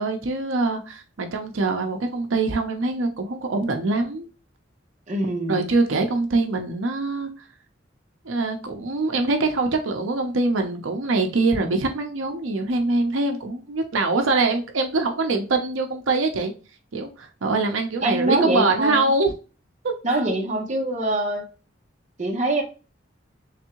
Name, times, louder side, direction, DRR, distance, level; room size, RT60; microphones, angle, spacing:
voice 1, 0.0-4.3 5.5-7.3 8.2-16.5 16.9-19.3 19.8-19.9, right 3 dB, 90° right, 0.7 m, -23 dB
voice 2, 5.1-5.6 18.0-19.0 20.0-21.5 22.2-22.6, right 1 dB, 35° right, 0.8 m, -24 dB
3.5 x 3.3 x 2.9 m
head